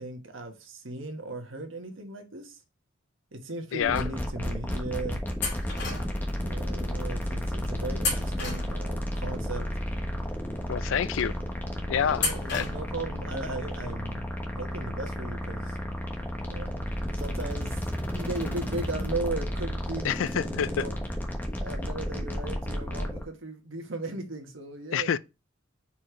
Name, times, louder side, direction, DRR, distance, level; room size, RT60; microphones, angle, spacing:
voice 1, 0.0-2.6 3.3-5.2 6.4-9.7 11.9-14.2 14.5-15.8 16.4-16.7 17.1-17.8 18.1-20.1 20.3-20.9 21.6-25.1, right 2 dB, 80° right, 1.4 m, -37 dB
voice 2, 3.7-4.0 10.7-11.3 11.9-12.7 20.0-20.9 24.9-25.2, left 8 dB, 80° left, 0.4 m, -27 dB
sound 1, 3.8-23.2, equal, 10° left, 1.2 m, -32 dB
sound 2, 5.4-6.3 8.0-9.1 12.2-13.1, left 3 dB, 60° left, 2.3 m, -32 dB
4.9 x 4.4 x 4.5 m
head